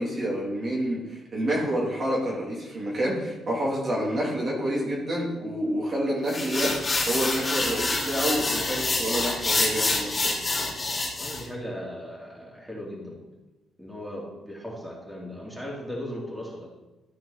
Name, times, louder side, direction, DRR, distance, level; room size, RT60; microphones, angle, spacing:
voice 1, 0.0-6.7 7.1-10.3, equal, 40° right, -4 dB, 2.7 m, -28 dB
sound 1, 6.3-11.4, left 2 dB, 25° left, 2.6 m, -27 dB
voice 2, 11.2-13.2 13.8-16.7, equal, 5° right, -4 dB, 2.9 m, -37 dB
13.0 x 4.8 x 4.3 m, 1.1 s
cardioid pair, 85°, 0 cm